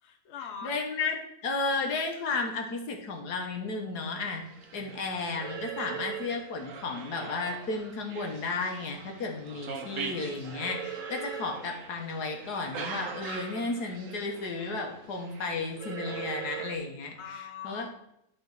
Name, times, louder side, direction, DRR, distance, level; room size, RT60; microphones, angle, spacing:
voice 1, 0.0-0.7 6.4-6.7 17.2-17.9, left 7 dB, 50° left, 3 dB, 1.1 m, -43 dB
voice 2, 0.6-1.2 1.4-4.4 4.7-17.2 17.6-17.9, left 3 dB, 80° left, 3 dB, 1.7 m, -33 dB
sound 1, 4.1-16.8, right 6 dB, 55° right, 1.2 m, -41 dB
11.0 x 4.1 x 4.0 m, 0.80 s
omnidirectional pair, 1.7 m